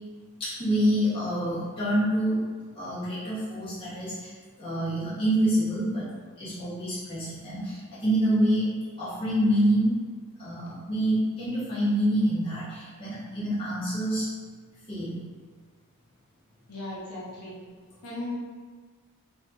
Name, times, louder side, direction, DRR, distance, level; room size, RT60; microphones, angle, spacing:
voice 1, 0.4-2.4 2.7-6.1 6.4-8.7 9.0-9.9 10.4-14.3 14.9-15.2, right 1 dB, 25° left, -12 dB, 0.7 m, -26 dB
voice 2, 16.7-17.6 18.0-18.3, left 2 dB, 90° left, -6 dB, 0.8 m, -36 dB
2.6 x 2.5 x 2.3 m, 1.5 s
head